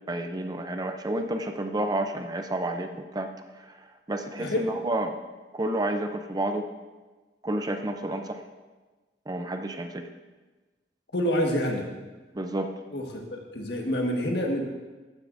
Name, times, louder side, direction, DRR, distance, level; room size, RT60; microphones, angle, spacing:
voice 1, 0.1-3.3 4.1-5.1 5.5-6.7 7.4-8.4 9.3-10.1 12.3-12.7, right 1 dB, 20° right, 6 dB, 0.5 m, -30 dB
voice 2, 4.4-4.7 11.1-11.9 12.9-13.1 13.5-14.6, equal, 70° left, 0 dB, 1.6 m, -27 dB
15.0 x 9.6 x 2.6 m, 1.3 s
head